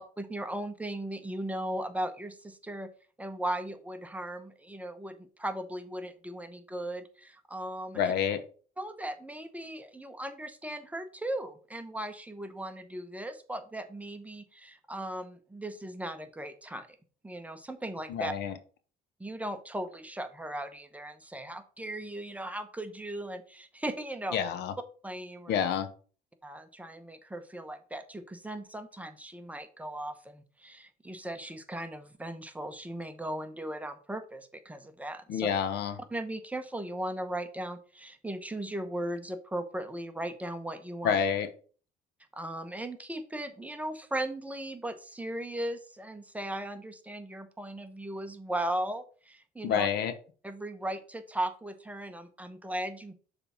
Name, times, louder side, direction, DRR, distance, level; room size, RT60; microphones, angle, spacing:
voice 1, 0.2-2.9 3.2-8.1 8.8-17.0 17.2-18.3 19.2-24.4 25.0-25.6 26.4-35.5 36.1-41.2 42.3-49.9 50.4-53.1, right 1 dB, 10° right, 8 dB, 0.9 m, -37 dB
voice 2, 7.9-8.4 18.1-18.5 24.3-24.7 25.5-25.9 35.3-35.9 41.0-41.5 49.6-50.1, left 8 dB, 80° left, 10 dB, 1.0 m, -28 dB
7.0 x 3.5 x 5.5 m, 0.40 s
cardioid pair, 110°, 17 cm